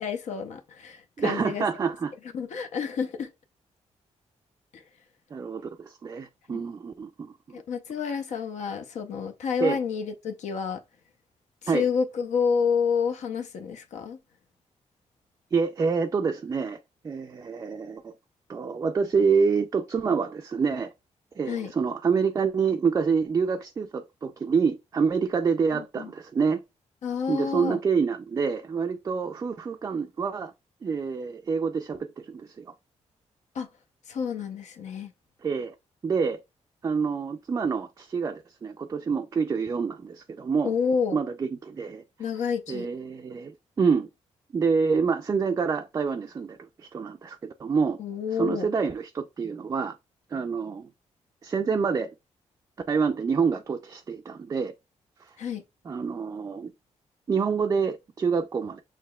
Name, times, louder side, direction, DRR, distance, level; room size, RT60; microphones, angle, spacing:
voice 1, 0.0-1.6 2.3-3.3 4.7-4.8 7.5-10.8 11.7-14.2 21.5-21.7 25.7-26.1 27.0-27.8 33.6-33.7 34.1-35.1 40.6-41.2 42.2-42.9 48.0-48.7 55.4-55.6, left 6 dB, 75° left, 0.6 m, -29 dB
voice 2, 1.2-2.1 5.3-7.6 8.0-8.1 9.6-9.8 11.7-11.9 15.5-16.8 17.0-18.1 18.5-20.9 21.4-26.6 27.3-30.5 30.8-32.7 35.4-35.7 36.0-36.4 36.8-40.7 41.1-42.3 42.7-44.1 44.5-48.0 48.3-49.9 50.3-50.9 51.4-52.1 52.9-54.7 55.8-56.7 57.3-58.8, right 5 dB, 25° right, 0.3 m, -27 dB
6.6 x 3.0 x 2.3 m
wide cardioid pair, 165°, 12 cm